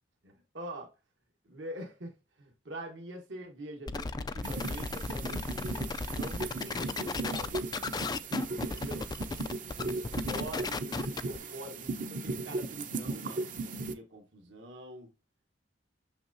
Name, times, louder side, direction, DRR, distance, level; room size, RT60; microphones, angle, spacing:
voice 1, 0.2-0.9 1.4-7.6 8.4-9.1 9.8-13.5 13.8-15.1, right 1 dB, 70° right, 1.4 m, -45 dB
sound 1, 3.9-11.4, left 3 dB, 20° left, 0.3 m, -35 dB
sound 2, 4.4-13.9, right 3 dB, 45° right, 0.7 m, -37 dB
6.5 x 5.9 x 2.7 m
head